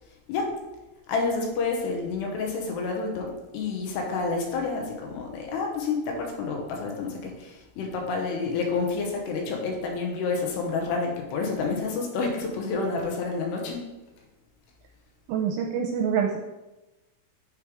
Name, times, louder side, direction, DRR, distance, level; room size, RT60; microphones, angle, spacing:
voice 1, 1.1-13.8, left 4 dB, 75° left, 1 dB, 2.6 m, -29 dB
voice 2, 15.3-16.4, right 7 dB, 85° right, 1 dB, 3.2 m, -26 dB
9.6 x 3.3 x 4.8 m, 1.0 s
omnidirectional pair, 5.9 m